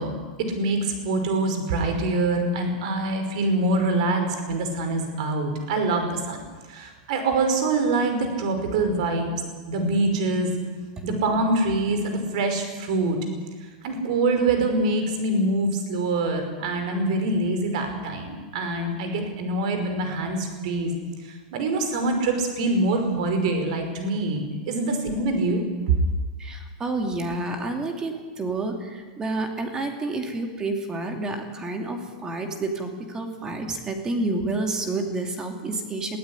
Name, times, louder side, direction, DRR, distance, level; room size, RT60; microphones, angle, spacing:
voice 1, 0.0-9.3 9.7-10.5 11.0-13.2 13.8-20.9 21.2-25.6, right 2 dB, 60° right, 6 dB, 5.3 m, -25 dB
voice 2, 26.4-36.2, right 2 dB, 15° right, 4 dB, 2.7 m, -29 dB
22.0 x 15.5 x 9.9 m, 1.5 s
supercardioid pair, 165°, 4 cm